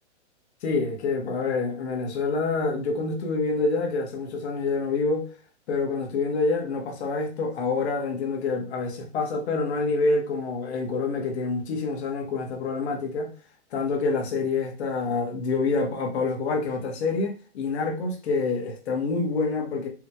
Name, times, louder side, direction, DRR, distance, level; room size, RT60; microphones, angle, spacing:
voice 1, 0.6-5.3 5.7-13.3 13.7-19.9, left 3 dB, 65° left, 1.3 m, -27 dB
4.7 x 2.7 x 2.3 m
hypercardioid pair, 140°, 35 cm